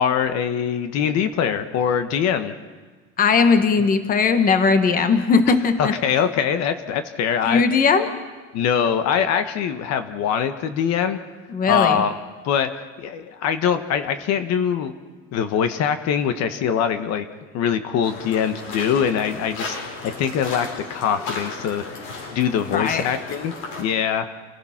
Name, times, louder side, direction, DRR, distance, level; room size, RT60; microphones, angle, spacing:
voice 1, 0.0-2.5 5.8-7.6 8.5-11.2 11.6-12.1 12.4-12.7 13.0-14.9 15.3-17.3 17.5-19.8 20.0-21.8 22.3-23.5 23.8-24.3, left 8 dB, 55° left, 9 dB, 1.4 m, -23 dB
voice 2, 3.2-5.9 7.4-8.1 11.5-12.0 22.7-23.0, left 5 dB, 25° left, 8 dB, 1.4 m, -18 dB
sound 1, 18.0-23.8, left 3 dB, 70° left, 7.7 m, -35 dB
29.0 x 17.0 x 5.9 m, 1.4 s
cardioid pair, 165°, 32 cm